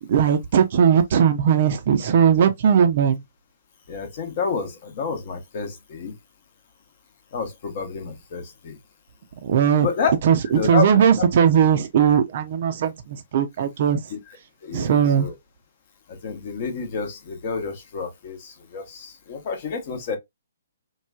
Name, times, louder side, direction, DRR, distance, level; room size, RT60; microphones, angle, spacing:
voice 1, 0.0-3.2 9.4-9.9 10.2-14.1 14.7-15.3, right 8 dB, 45° right, 0.5 m, -19 dB
voice 2, 3.9-6.2 7.3-8.8 9.8-10.1 10.5-10.9 11.2-11.3 14.1-14.2 14.6-15.3 16.2-20.2, left 5 dB, 40° left, 0.8 m, -29 dB
3.1 x 2.2 x 2.2 m
figure-of-eight pair, 130°, 0 cm